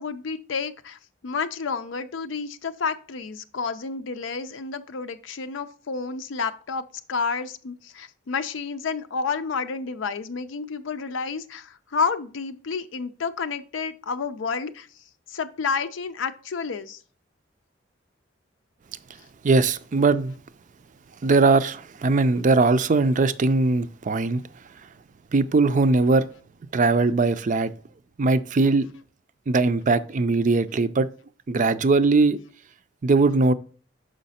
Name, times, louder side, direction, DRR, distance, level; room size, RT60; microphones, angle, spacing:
voice 1, 0.0-14.9 15.3-17.0, left 5 dB, 75° left, 0.5 m, -30 dB
voice 2, 19.4-20.3 21.2-24.4 25.3-26.3 26.7-27.7 28.2-28.9 29.5-31.1 31.5-32.4 33.0-33.5, right 3 dB, 40° right, 0.4 m, -20 dB
6.4 x 5.0 x 4.1 m
head